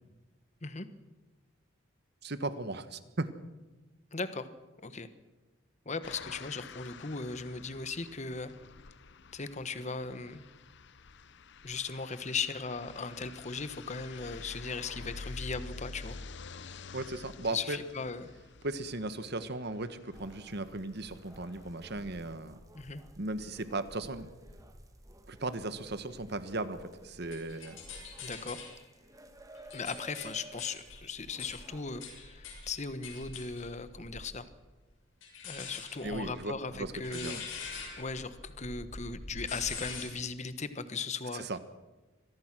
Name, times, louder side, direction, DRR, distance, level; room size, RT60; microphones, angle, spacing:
voice 1, 2.2-3.3 16.9-17.8 18.6-22.6 23.2-24.3 25.3-27.8 36.0-37.4 41.3-41.6, right 2 dB, 55° right, 12 dB, 1.4 m, -37 dB
voice 2, 4.1-4.5 4.8-5.1 5.8-8.5 9.3-10.4 11.6-16.2 17.5-18.3 22.7-23.0 28.2-28.6 29.7-34.5 35.4-37.4 38.0-41.5, left 4 dB, 35° left, 12 dB, 1.2 m, -38 dB
sound 1, 6.0-22.2, left 4 dB, 60° left, 0.8 m, -49 dB
sound 2, 20.1-32.0, right 1 dB, 15° right, 1.6 m, -54 dB
sound 3, 26.7-28.8 29.3-34.4 35.2-40.0, left 4 dB, 75° left, 6.6 m, -44 dB
25.0 x 17.5 x 6.2 m, 1.2 s
head